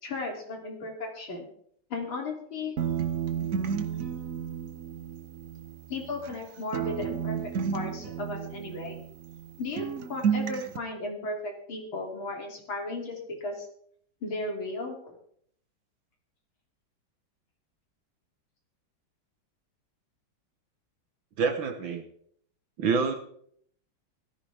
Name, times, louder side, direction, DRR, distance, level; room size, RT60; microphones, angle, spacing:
voice 1, 0.0-1.5 1.9-2.7 5.9-9.0 9.6-13.7 14.2-15.2, left 2 dB, 80° left, 1 dB, 3.9 m, -35 dB
sound 1, 2.8-6.4 6.7-9.5 9.8-10.8, right 7 dB, 50° right, 1.2 m, -32 dB
voice 2, 21.4-22.0 22.8-23.1, right 5 dB, 70° right, 5 dB, 1.9 m, -26 dB
16.5 x 15.0 x 3.5 m, 0.64 s
omnidirectional pair, 2.2 m